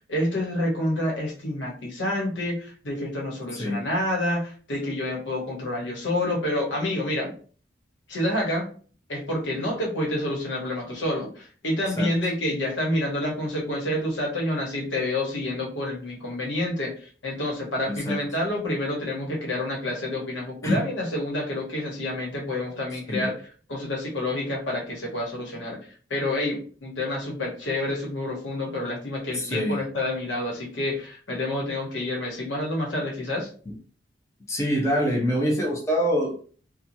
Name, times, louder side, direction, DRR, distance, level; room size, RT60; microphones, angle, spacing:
voice 1, 0.0-7.3 8.1-8.7 9.1-23.3 23.7-25.8 26.1-33.5, left 1 dB, 90° left, -2 dB, 1.1 m, -28 dB
voice 2, 3.5-3.8 12.0-12.3 17.9-18.2 20.6-20.8 23.1-23.3 29.3-29.8 33.7-33.8 34.5-36.4, equal, 15° left, -2 dB, 0.6 m, -25 dB
3.0 x 2.2 x 2.6 m, 0.42 s
head